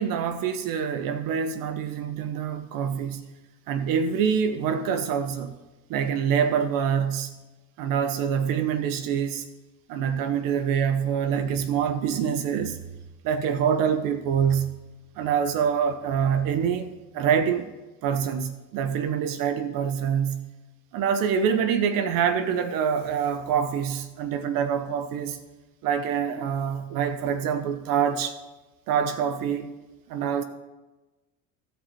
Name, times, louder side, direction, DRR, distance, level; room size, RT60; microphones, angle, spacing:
voice 1, 0.0-3.2 3.7-5.6 5.9-7.3 7.8-9.4 9.9-12.8 13.2-14.8 15.2-17.7 18.0-20.5 20.9-25.4 25.8-28.4 28.9-29.7 30.1-30.4, right 7 dB, 55° right, 10 dB, 0.9 m, -25 dB
15.5 x 5.2 x 4.3 m, 1.1 s
hypercardioid pair, 70°, 40 cm